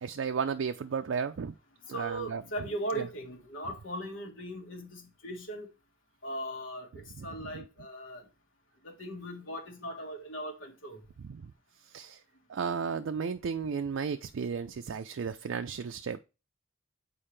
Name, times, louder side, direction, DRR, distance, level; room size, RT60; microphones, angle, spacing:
voice 1, 0.0-1.5 1.9-2.4 7.2-7.6 11.2-11.4 11.9-12.2 12.5-16.2, right 6 dB, 70° right, 0.4 m, -34 dB
voice 2, 1.9-5.7 6.2-8.2 8.8-11.0, right 1 dB, 70° left, 1.6 m, -38 dB
7.3 x 4.6 x 3.3 m
head